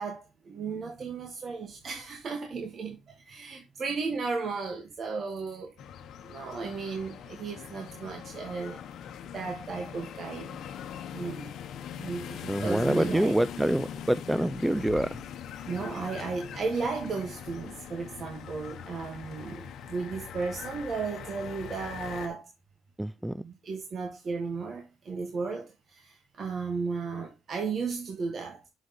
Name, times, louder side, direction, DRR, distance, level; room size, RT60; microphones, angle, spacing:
voice 1, 0.0-5.7 6.2-8.8 9.3-10.6 11.1-11.5 12.0-13.4 15.6-22.5 23.4-28.6, right 4 dB, 50° right, 1.3 m, -35 dB
sound 1, 5.8-22.3, left 8 dB, 75° left, 0.9 m, -42 dB
voice 2, 12.5-15.2 23.0-23.4, right 1 dB, 5° right, 0.3 m, -26 dB
6.3 x 3.9 x 5.5 m
cardioid pair, 90°, 0 cm